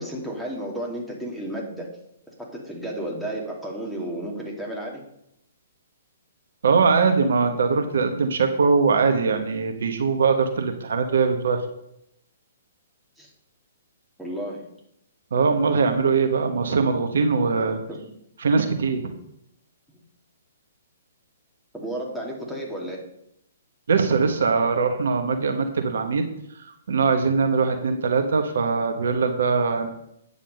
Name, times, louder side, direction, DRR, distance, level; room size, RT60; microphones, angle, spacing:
voice 1, 0.0-1.9 2.4-5.0 13.2-13.3 14.2-14.7 17.9-18.0 21.7-23.0, right 1 dB, ahead, -2 dB, 2.5 m, -32 dB
voice 2, 6.6-11.6 15.3-17.8 18.4-19.0 23.9-26.2 26.5-29.9, right 5 dB, 65° right, 5 dB, 1.3 m, -21 dB
9.6 x 7.0 x 5.4 m, 0.78 s
figure-of-eight pair, 125°, 0 cm